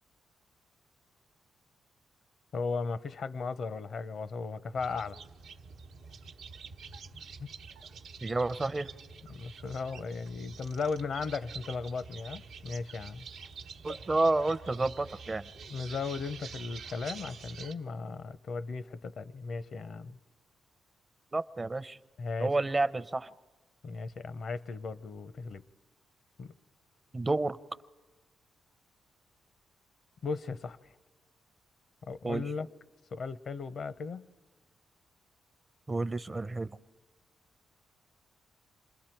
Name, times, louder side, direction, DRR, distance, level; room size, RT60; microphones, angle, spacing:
voice 1, 2.5-5.2 7.4-7.5 9.3-13.3 15.7-20.2 22.2-22.6 23.8-25.6 26.4-26.5 30.2-30.8 32.0-32.7 33.1-34.3, left 4 dB, 65° left, 0.6 m, -36 dB
sound 1, 4.8-17.7, right 5 dB, 85° right, 0.9 m, -47 dB
voice 2, 8.2-8.9 13.8-15.4 21.3-22.0 22.4-23.3 27.1-27.6 32.2-32.4 35.9-36.7, right 2 dB, 30° right, 0.6 m, -30 dB
27.5 x 21.5 x 4.5 m
cardioid pair, 65°, 0 cm